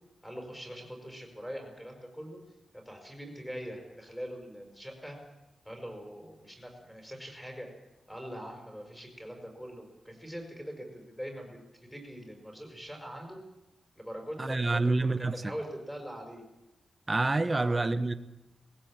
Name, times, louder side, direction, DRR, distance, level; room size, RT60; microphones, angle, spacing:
voice 1, 0.2-2.4 2.7-5.2 5.7-7.7 8.1-11.6 11.9-13.4 14.0-16.4 17.5-17.8, equal, 5° left, 5.5 m, -42 dB
voice 2, 14.4-15.5 17.1-18.1, right 2 dB, 25° right, 1.1 m, -27 dB
19.5 x 16.5 x 8.8 m
wide cardioid pair, 135°, 0 cm